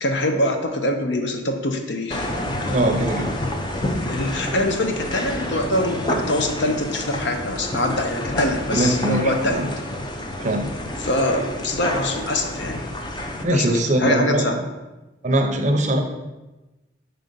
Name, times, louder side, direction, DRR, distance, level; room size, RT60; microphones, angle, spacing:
voice 1, 0.0-2.3 4.0-9.7 11.0-12.9 13.4-14.6, left 1 dB, 60° left, 5 dB, 0.7 m, -24 dB
sound 1, 2.1-13.4, left 1 dB, 20° left, 0.5 m, -29 dB
voice 2, 2.7-3.3 8.7-9.7 10.4-10.7 13.4-14.5 15.2-16.0, right 1 dB, 35° right, 5 dB, 0.6 m, -21 dB
5.6 x 3.8 x 5.3 m, 1.1 s
head